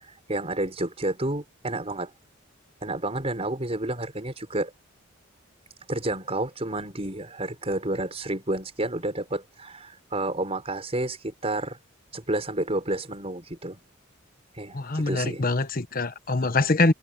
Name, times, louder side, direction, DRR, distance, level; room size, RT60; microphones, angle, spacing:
voice 1, 0.0-2.1 2.8-4.7 5.9-11.8 12.1-13.8 14.6-15.5, right 2 dB, 30° right, 5.0 m, -30 dB
voice 2, 14.7-16.9, left 2 dB, 45° left, 1.2 m, -24 dB
head